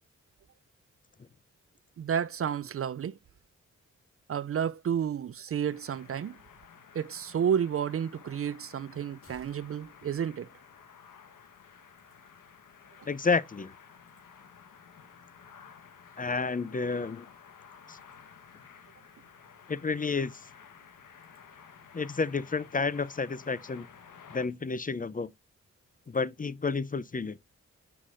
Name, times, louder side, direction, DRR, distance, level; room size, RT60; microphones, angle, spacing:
voice 1, 2.0-3.2 4.3-6.4 6.9-10.5, right 8 dB, 45° right, 0.4 m, -31 dB
sound 1, 5.7-24.5, left 7 dB, 85° left, 1.3 m, -53 dB
sound 2, 9.2-11.6 11.9-12.0, left 1 dB, 45° left, 4.1 m, -60 dB
voice 2, 13.1-13.7 16.2-17.3 17.9-18.0 19.7-20.3 21.9-23.9 24.3-25.3 26.1-27.4, left 4 dB, 25° left, 0.6 m, -30 dB
8.1 x 5.8 x 2.5 m
cardioid pair, 55°, 31 cm